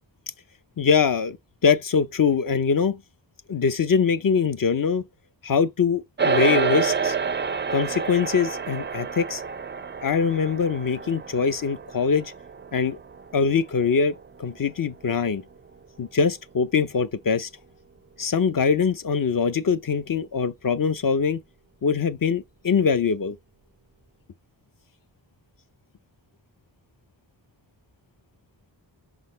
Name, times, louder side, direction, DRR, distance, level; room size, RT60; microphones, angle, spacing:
voice 1, 0.8-1.4 1.6-3.0 3.5-5.1 5.4-7.2 7.7-9.4 10.0-12.3 12.7-13.0 13.3-15.4 16.0-17.5 18.2-21.4 21.8-23.4, left 6 dB, 45° left, 0.7 m, -23 dB
sound 1, 6.2-15.7, right 6 dB, 25° right, 0.3 m, -29 dB
5.6 x 4.0 x 5.1 m
wide cardioid pair, 85°, 44 cm